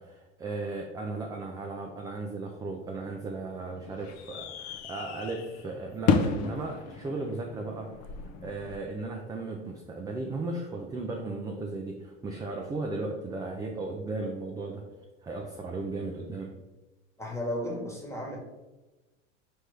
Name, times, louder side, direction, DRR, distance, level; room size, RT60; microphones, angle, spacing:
voice 1, 0.0-7.9 8.4-14.8 15.2-16.5, right 3 dB, 10° right, 1 dB, 0.3 m, -36 dB
sound 1, 2.8-8.8, left 5 dB, 45° left, 0.5 m, -33 dB
voice 2, 17.2-18.4, left 1 dB, 5° left, -1 dB, 1.3 m, -34 dB
5.2 x 3.1 x 3.3 m, 1.1 s
hypercardioid pair, 80°, 38 cm